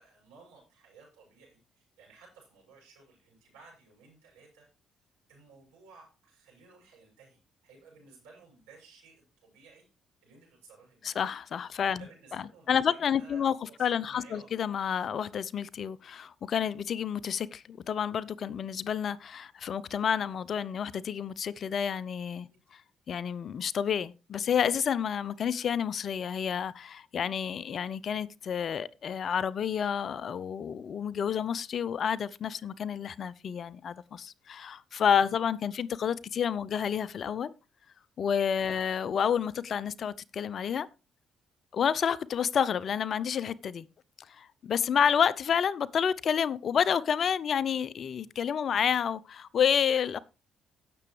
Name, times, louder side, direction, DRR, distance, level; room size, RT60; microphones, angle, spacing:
voice 1, 0.0-4.7 5.3-9.9 10.2-11.1 11.9-14.5 22.5-22.6 38.6-38.9, right 4 dB, 80° right, 6.7 m, -56 dB
voice 2, 11.0-12.0 12.7-13.5 13.8-22.8 23.1-37.5 38.2-40.9 41.7-43.9 44.3-50.2, left 8 dB, 55° left, 0.6 m, -29 dB
16.5 x 7.0 x 3.2 m
hypercardioid pair, 45°, 0 cm